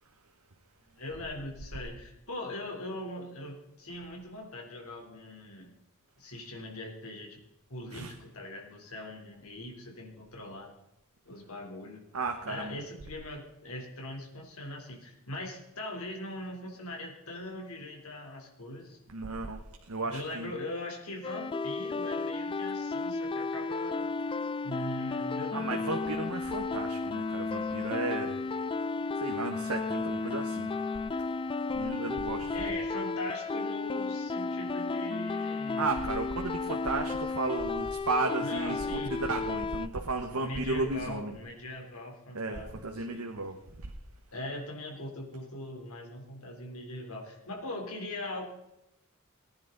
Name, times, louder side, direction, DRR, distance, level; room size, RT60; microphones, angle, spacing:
voice 1, 0.8-5.7 6.2-7.4 7.7-10.7 11.3-12.0 12.5-19.0 20.0-24.1 24.6-26.2 30.1-30.4 32.5-36.0 38.4-39.3 40.3-43.3 44.3-48.4, left 1 dB, 75° left, 1 dB, 3.6 m, -41 dB
voice 2, 12.1-12.8 19.1-19.6 19.9-20.5 25.5-28.4 29.2-30.7 31.7-32.5 35.8-41.3 42.3-43.6, right 3 dB, 85° right, 4 dB, 1.2 m, -34 dB
sound 1, 21.2-39.9, left 3 dB, 25° left, 0.4 m, -33 dB
19.5 x 10.5 x 4.0 m, 0.90 s
head